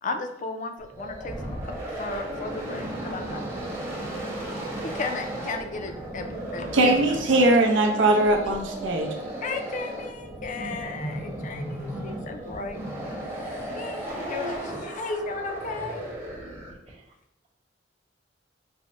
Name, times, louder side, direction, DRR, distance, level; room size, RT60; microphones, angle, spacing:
voice 1, 0.0-3.5 4.8-7.2 9.4-12.8 13.4-16.1, left 3 dB, 45° left, 5 dB, 0.4 m, -35 dB
sound 1, 0.8-16.9, right 1 dB, 15° right, 0.8 m, -35 dB
voice 2, 6.7-9.1, right 2 dB, 90° right, 2 dB, 0.6 m, -20 dB
voice 3, 14.0-14.8 16.9-17.1, equal, 35° right, 1 dB, 0.3 m, -40 dB
3.5 x 2.1 x 4.0 m, 0.77 s
head